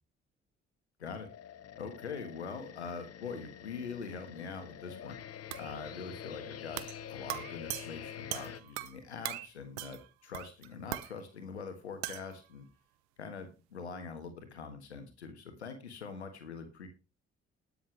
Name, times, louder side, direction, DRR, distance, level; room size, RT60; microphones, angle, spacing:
voice 1, 1.0-1.3 1.8-5.2 5.5-12.7 13.2-16.9, left 5 dB, 90° left, 7 dB, 1.5 m, -43 dB
sound 1, 1.0-8.6, left 9 dB, 45° left, 1.1 m, -47 dB
sound 2, 5.5-5.8 6.8-7.0 7.3-9.0 9.2-9.5 9.8-10.1 10.3-11.1 12.0-12.3, right 18 dB, 75° right, 0.8 m, -40 dB
20.0 x 6.8 x 3.2 m, 0.29 s
figure-of-eight pair, 45°, 33 cm